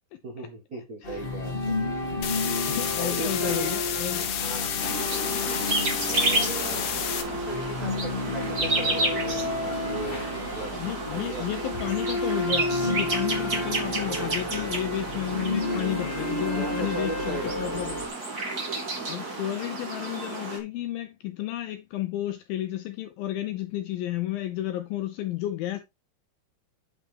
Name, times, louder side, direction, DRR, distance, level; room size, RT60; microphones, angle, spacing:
voice 1, 0.2-1.7 3.0-3.7 4.4-4.7 6.0-6.9 7.3-10.8 11.1-11.5 16.5-17.9, right 2 dB, 75° right, 0.8 m, -37 dB
sound 1, 1.0-18.1, left 2 dB, 25° left, 1.3 m, -31 dB
sound 2, 2.2-7.2, left 9 dB, 65° left, 2.5 m, -30 dB
voice 2, 2.7-4.2 10.7-18.0 19.1-25.8, left 13 dB, 85° left, 2.0 m, -32 dB
sound 3, 4.8-20.6, right 2 dB, 30° right, 1.9 m, -31 dB
9.3 x 6.0 x 3.4 m
omnidirectional pair, 4.9 m